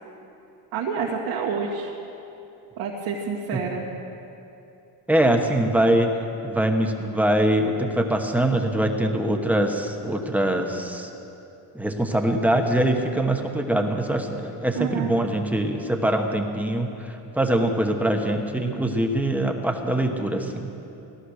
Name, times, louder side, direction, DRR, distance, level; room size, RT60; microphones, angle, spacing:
voice 1, 0.7-1.9 2.8-3.9 14.7-15.1, right 6 dB, 80° right, -3 dB, 2.2 m, -28 dB
voice 2, 5.1-6.1 6.4-11.1 11.7-20.7, right 1 dB, 5° right, 3 dB, 1.0 m, -23 dB
18.0 x 12.5 x 6.4 m, 2.8 s
cardioid pair, 155°, 45 cm